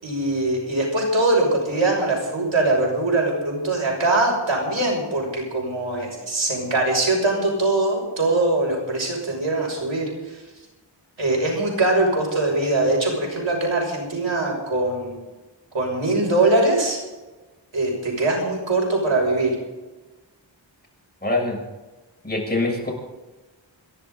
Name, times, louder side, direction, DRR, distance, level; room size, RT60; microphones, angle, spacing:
voice 1, 0.0-10.4 11.2-15.2 15.7-17.0 17.7-19.6, right 2 dB, 85° right, -1 dB, 6.2 m, -22 dB
voice 2, 21.2-21.6 22.2-22.9, left 2 dB, 20° left, -1 dB, 7.2 m, -24 dB
28.5 x 11.5 x 4.0 m, 1.2 s
wide cardioid pair, 65°, 45 cm